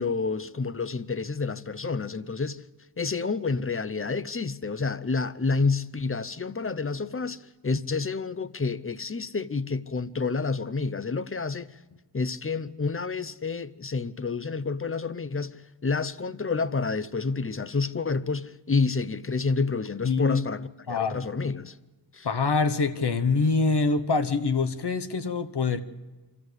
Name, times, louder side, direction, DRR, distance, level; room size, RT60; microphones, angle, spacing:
voice 1, 0.0-2.6 3.0-11.8 12.1-21.8 22.1-22.3, left 4 dB, 30° left, 0.7 m, -29 dB
voice 2, 20.0-20.4 20.9-21.3 22.2-25.8, left 4 dB, 65° left, 1.1 m, -25 dB
25.0 x 14.0 x 8.0 m
wide cardioid pair, 65°, 43 cm